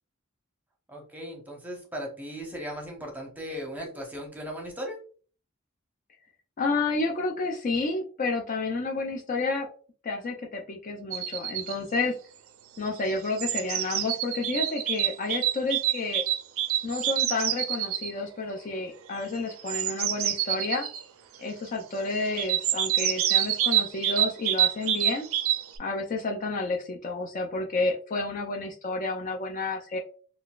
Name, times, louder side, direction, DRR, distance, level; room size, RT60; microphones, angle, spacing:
voice 1, 0.9-5.0, equal, 10° right, 0 dB, 0.8 m, -37 dB
voice 2, 6.6-9.7 10.0-12.2 12.8-16.2 16.8-20.9 21.4-25.3 25.8-30.0, left 3 dB, 40° left, 1 dB, 0.4 m, -30 dB
sound 1, 11.1-11.8 12.9-18.1 19.5-21.0 22.4-25.8, right 12 dB, 75° right, 0.4 m, -27 dB
3.8 x 2.3 x 2.3 m, 0.41 s
head